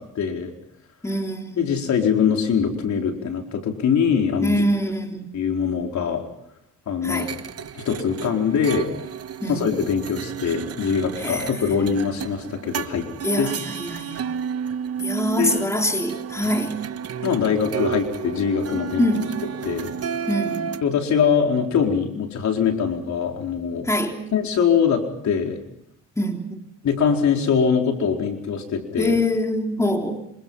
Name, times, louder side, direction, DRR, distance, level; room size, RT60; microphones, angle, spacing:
voice 1, 0.1-0.5 1.6-4.7 5.3-6.2 6.9-7.3 7.7-8.9 9.5-13.1 13.4-13.5 15.4-15.6 17.2-19.1 19.6-19.9 20.8-23.9 24.3-25.6 26.8-29.2, left 6 dB, 65° left, 3 dB, 4.4 m, -22 dB
voice 2, 1.0-1.6 4.4-5.4 7.0-7.3 9.4-9.6 11.2-11.5 13.2-14.3 15.0-16.8 19.0-19.3 20.3-20.7 23.9-24.2 26.2-26.6 29.0-30.2, left 1 dB, 10° left, 3 dB, 3.7 m, -24 dB
sound 1, 7.1-20.8, right 7 dB, 55° right, 1.3 m, -32 dB
27.0 x 26.5 x 5.7 m, 0.76 s
cardioid pair, 90°, 30 cm